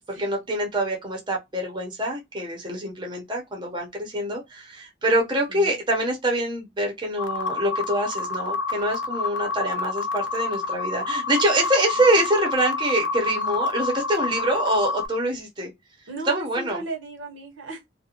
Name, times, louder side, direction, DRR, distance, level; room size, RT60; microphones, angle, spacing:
voice 1, 0.2-15.7 16.3-16.8, right 1 dB, 25° right, 0.7 m, -25 dB
voice 2, 5.2-5.8 16.1-17.9, right 2 dB, 90° right, 1.0 m, -36 dB
sound 1, 7.2-15.1, left 3 dB, 80° left, 0.5 m, -28 dB
2.5 x 2.1 x 2.8 m
head